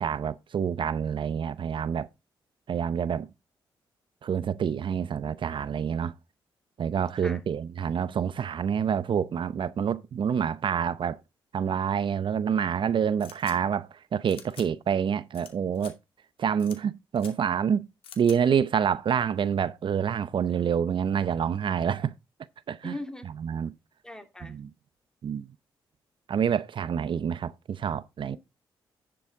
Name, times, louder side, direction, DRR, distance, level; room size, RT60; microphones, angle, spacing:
voice 1, 0.0-2.1 2.7-3.3 4.2-6.1 6.8-11.2 11.5-15.9 16.4-17.9 18.2-22.1 22.7-22.9 23.4-23.7 24.4-24.7 25.2-25.5 26.3-28.4, right 7 dB, 60° right, 0.7 m, -27 dB
sound 1, 13.2-13.5 14.3-14.7 15.3-15.5 15.7-15.9 16.6-16.8 17.1-17.3 18.0-18.4, left 8 dB, 75° left, 2.4 m, -46 dB
voice 2, 22.8-23.3 24.0-24.6 28.3-28.4, left 1 dB, 5° left, 2.6 m, -39 dB
10.5 x 7.0 x 3.6 m
supercardioid pair, 60°, 10 cm